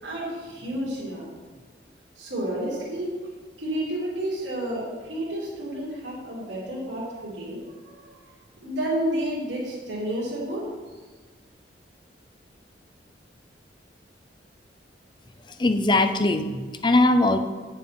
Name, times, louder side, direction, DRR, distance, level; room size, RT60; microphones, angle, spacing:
voice 1, 0.0-1.3 2.2-3.1 3.6-8.1 8.6-10.6, right 1 dB, 85° right, -8 dB, 2.6 m, -30 dB
voice 2, 15.6-17.4, left 2 dB, 25° left, 8 dB, 0.5 m, -20 dB
9.6 x 7.1 x 4.4 m, 1.4 s
head